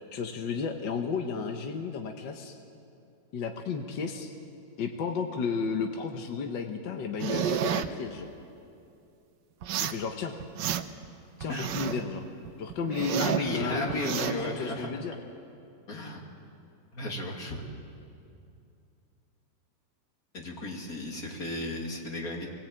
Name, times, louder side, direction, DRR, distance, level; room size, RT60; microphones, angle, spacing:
voice 1, 0.1-2.6 3.3-4.3 4.8-8.3 9.8-10.3 11.4-12.2 12.6-15.2, left 5 dB, 75° left, 4 dB, 1.8 m, -33 dB
sound 1, 7.2-7.9 9.6-10.0 10.4-11.1 11.4-12.1 12.5-13.5 13.9-14.3, right 10 dB, 70° right, 1.4 m, -30 dB
voice 2, 13.2-14.9 15.9-16.2 16.9-17.6 20.3-22.5, left 1 dB, 50° left, 0 dB, 2.9 m, -34 dB
23.5 x 18.0 x 8.8 m, 2.6 s
omnidirectional pair, 2.0 m